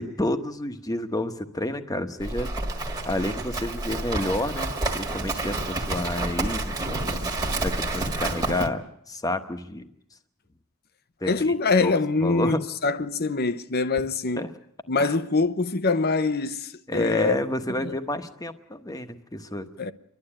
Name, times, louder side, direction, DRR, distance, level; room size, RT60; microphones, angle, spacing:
voice 1, 0.0-2.5 3.0-7.3 7.6-9.9 11.2-11.5 11.8-12.6 14.4-14.5 15.0-15.1 16.9-19.7, left 1 dB, 15° left, 1.2 m, -30 dB
Livestock farm animals working animals, 2.2-8.7, right 2 dB, 20° right, 1.7 m, -29 dB
voice 2, 11.2-12.6 12.8-14.5 14.9-17.4 17.8-17.9 19.8-19.9, left 3 dB, 45° left, 0.8 m, -24 dB
30.0 x 12.0 x 8.8 m
head